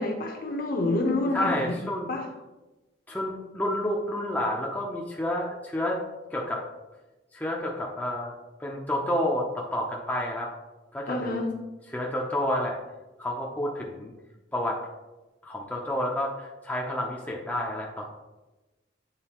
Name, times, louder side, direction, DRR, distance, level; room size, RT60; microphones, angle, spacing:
voice 1, 0.0-1.7 2.1-2.2 11.1-11.4, left 2 dB, 50° left, 2 dB, 0.9 m, -27 dB
voice 2, 1.3-2.1 3.1-6.0 6.3-6.6 7.3-8.3 8.6-10.5 10.9-11.4 11.9-12.8 13.2-14.1 14.5-14.8 15.4-18.1, left 1 dB, 10° left, -2 dB, 0.5 m, -29 dB
8.8 x 3.9 x 2.9 m, 1.1 s
head